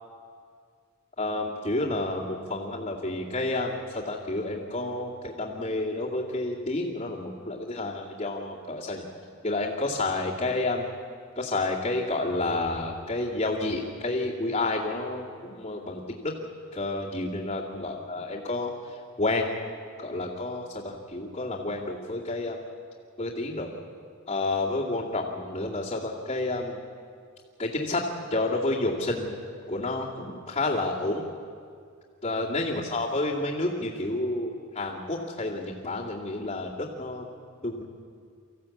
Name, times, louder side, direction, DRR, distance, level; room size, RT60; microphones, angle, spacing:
voice 1, 1.2-9.0 9.4-10.9 11.4-16.3 16.7-19.5 20.0-22.6 23.2-23.7 24.3-26.8 27.6-28.0 28.3-29.3 29.7-31.2 32.2-37.3 37.6-37.8, left 2 dB, 30° left, -8 dB, 2.4 m, -30 dB
25.0 x 15.0 x 8.5 m, 2.2 s
head